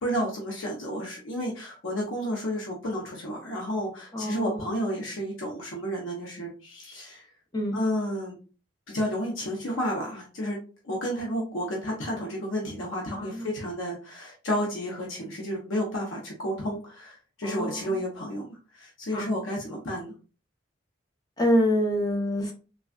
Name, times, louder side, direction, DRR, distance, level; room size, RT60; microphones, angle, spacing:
voice 1, 0.0-7.3 7.7-8.4 8.9-10.6 10.8-20.1, equal, 85° left, -2 dB, 0.8 m, -31 dB
voice 2, 4.1-4.6 7.5-7.7 13.2-13.5 17.4-17.9 19.1-19.3 21.4-22.5, equal, 20° left, 1 dB, 0.7 m, -26 dB
3.3 x 2.3 x 2.4 m, 0.36 s
head